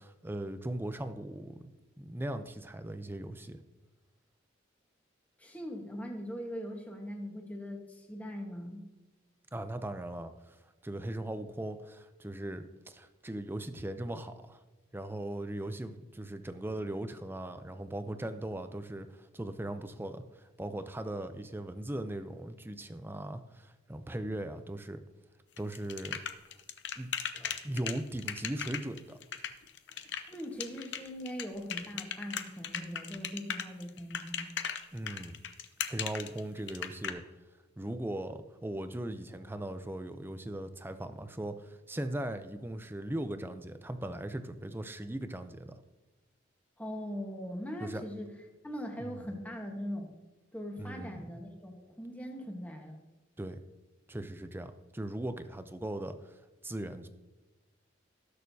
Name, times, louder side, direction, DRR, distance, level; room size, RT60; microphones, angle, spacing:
voice 1, 0.0-1.6 2.0-3.6 9.5-10.6 10.8-14.6 14.9-25.0 25.6-26.2 27.0-27.1 27.6-29.2 34.9-35.4 35.9-37.3 37.8-45.8 47.8-48.0 49.0-49.2 50.8-51.2 53.4-53.6 54.1-56.4 56.6-57.1, right 1 dB, 10° right, 9 dB, 0.5 m, -39 dB
voice 2, 5.4-8.8 27.3-27.6 29.9-34.5 46.8-48.3 48.6-50.1 50.5-53.0, equal, 10° left, 2 dB, 1.3 m, -41 dB
sound 1, 25.6-37.1, left 8 dB, 60° left, 0.7 m, -37 dB
18.5 x 6.5 x 2.8 m, 1.2 s
head